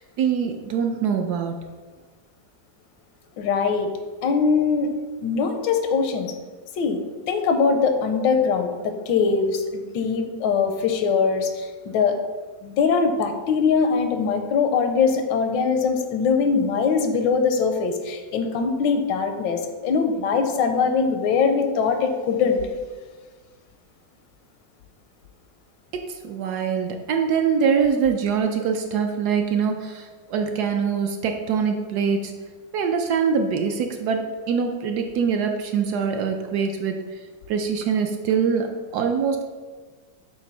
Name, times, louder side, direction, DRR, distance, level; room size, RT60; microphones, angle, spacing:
voice 1, 0.0-1.5 26.2-32.3 32.7-36.9 37.5-38.7 38.9-39.4, right 6 dB, 70° right, 4 dB, 1.0 m, -23 dB
voice 2, 3.4-3.9 4.2-4.9 5.2-6.3 6.8-7.0 7.3-12.2 12.6-22.6, left 5 dB, 85° left, 6 dB, 1.4 m, -22 dB
7.2 x 2.6 x 5.4 m, 1.4 s
omnidirectional pair, 2.0 m